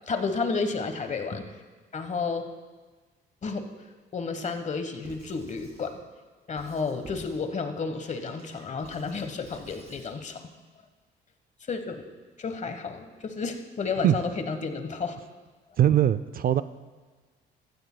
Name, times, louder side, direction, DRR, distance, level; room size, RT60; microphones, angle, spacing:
voice 1, 0.1-1.4 1.9-2.5 3.4-3.6 4.1-5.9 6.5-10.4 11.7-12.0 12.4-15.2, left 4 dB, 35° left, 7 dB, 1.2 m, -31 dB
Squeak / Writing, 5.0-5.9 6.6-7.4 7.9-10.1, right 1 dB, 30° right, 3.4 m, -50 dB
voice 2, 15.8-16.6, right 11 dB, 45° right, 14 dB, 0.4 m, -21 dB
15.0 x 14.0 x 2.2 m, 1.3 s
cardioid pair, 85°, 20 cm